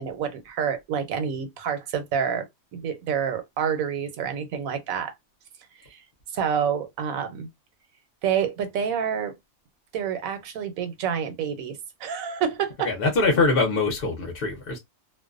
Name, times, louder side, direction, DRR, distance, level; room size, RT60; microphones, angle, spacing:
voice 1, 0.0-2.5 2.7-5.1 5.9-6.0 6.3-7.5 8.2-9.3 9.9-12.9, right 7 dB, 80° right, 1.1 m, -28 dB
voice 2, 12.8-14.8, left 3 dB, 50° left, 0.9 m, -23 dB
2.5 x 2.2 x 2.4 m
omnidirectional pair, 1.4 m